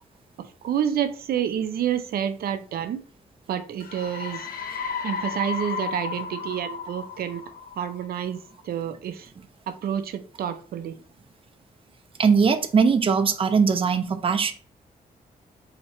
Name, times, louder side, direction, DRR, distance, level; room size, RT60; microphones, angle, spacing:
voice 1, 0.4-3.0 3.5-4.5 5.0-7.4 7.8-8.4 8.6-9.3 9.7-11.0, right 9 dB, 85° right, 10 dB, 0.5 m, -28 dB
sound 1, 3.8-8.4, left 6 dB, 75° left, 0.7 m, -34 dB
voice 2, 12.2-14.5, right 5 dB, 35° right, 8 dB, 0.5 m, -20 dB
4.3 x 2.8 x 4.2 m, 0.42 s
wide cardioid pair, 115°, 15 cm